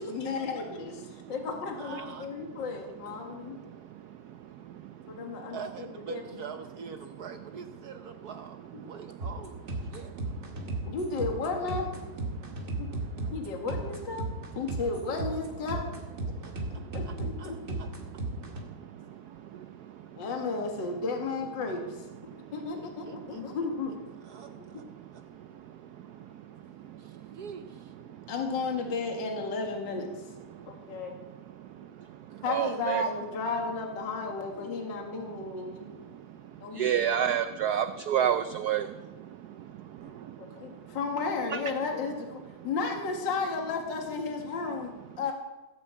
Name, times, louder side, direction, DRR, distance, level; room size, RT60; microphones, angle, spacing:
voice 1, 0.0-3.6 5.1-6.2 10.8-11.9 12.5-12.9 13.3-14.2 14.6-15.8 16.2-16.3 16.9-17.6 20.2-22.2 22.5-23.9 28.3-30.1 30.7-31.1 32.4-35.9 36.6-37.1 40.4-44.9 45.2-45.3, left 4 dB, 55° left, 2 dB, 2.5 m, -33 dB
voice 2, 1.7-2.3 3.6-3.8 5.5-8.6 8.9-10.1 16.4-17.9 22.5-23.4 24.2-24.8 25.1-25.2 27.0-27.9 32.3-32.7 40.0-40.2 40.5-40.8, right 6 dB, 60° right, 8 dB, 1.1 m, -45 dB
voice 3, 4.6-5.4 8.8-8.9 10.5-10.9 12.4-13.3 16.4-16.9 18.4-20.0 22.3-22.5 23.3-23.4 25.0-25.1 25.3-25.7 26.3-26.6 26.9-27.4 30.5-31.0 31.7-31.9 32.3-33.0 36.0-36.3 36.7-41.0 41.5-41.6, right 9 dB, 80° right, 10 dB, 0.8 m, -33 dB
sound 1, 9.2-18.6, right 2 dB, 35° right, 2.2 m, -35 dB
16.5 x 8.7 x 8.2 m, 1.1 s
omnidirectional pair, 2.4 m